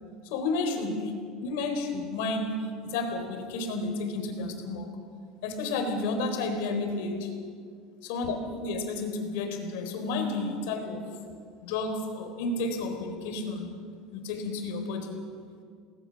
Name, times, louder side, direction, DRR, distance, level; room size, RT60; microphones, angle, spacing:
voice 1, 0.2-1.1 1.4-4.9 5.4-7.3 8.0-11.1 11.6-13.8 14.1-15.2, left 3 dB, 75° left, 5 dB, 4.2 m, -31 dB
29.0 x 20.0 x 6.6 m, 2.1 s
cardioid pair, 175°, 0 cm